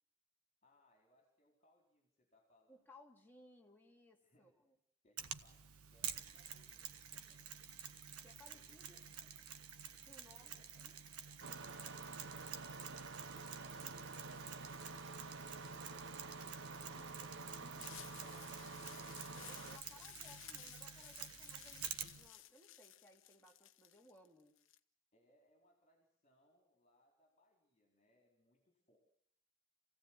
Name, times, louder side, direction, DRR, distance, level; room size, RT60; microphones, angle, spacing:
voice 1, 0.6-2.9 4.2-4.6 5.0-7.5 8.5-9.4 10.4-12.5 25.1-29.0, left 1 dB, 30° left, 2 dB, 4.4 m, -74 dB
voice 2, 2.7-4.7 8.2-9.0 10.0-11.0 16.9-17.8 18.2-18.6 19.3-24.5, left 1 dB, 10° left, 0 dB, 2.9 m, -64 dB
Mechanisms, 5.2-22.3, right 8 dB, 90° right, 1.5 m, -50 dB
Engine starting, 11.4-19.8, right 3 dB, 55° right, 1.0 m, -49 dB
sound 1, 17.8-24.8, left 12 dB, 60° left, 1.0 m, -57 dB
28.0 x 16.5 x 9.2 m, 0.72 s
head